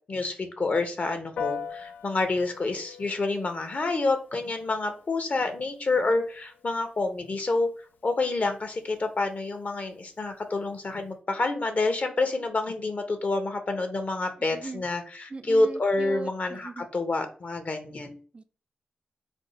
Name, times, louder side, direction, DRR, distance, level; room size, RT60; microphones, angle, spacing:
voice 1, 0.1-7.7 8.0-18.2, left 3 dB, 55° left, 7 dB, 0.7 m, -28 dB
Piano, 1.4-11.1, left 7 dB, 80° left, 0.3 m, -43 dB
voice 2, 14.4-14.8 15.3-16.9 18.3-18.4, right 3 dB, 40° right, 9 dB, 0.4 m, -39 dB
3.4 x 2.1 x 4.0 m, 0.40 s
cardioid pair, 45°, 3 cm